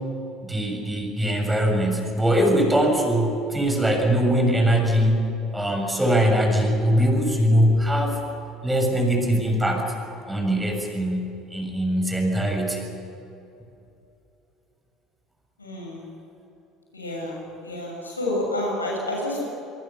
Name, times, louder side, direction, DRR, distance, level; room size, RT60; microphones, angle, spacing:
voice 1, 0.4-5.2 5.5-8.2 8.6-9.8 10.2-12.9, equal, 10° right, 2 dB, 6.6 m, -22 dB
voice 2, 15.6-16.0 16.9-19.4, left 1 dB, 90° left, -2 dB, 6.6 m, -29 dB
24.5 x 24.5 x 7.0 m, 2.8 s
figure-of-eight pair, 60°, 0 cm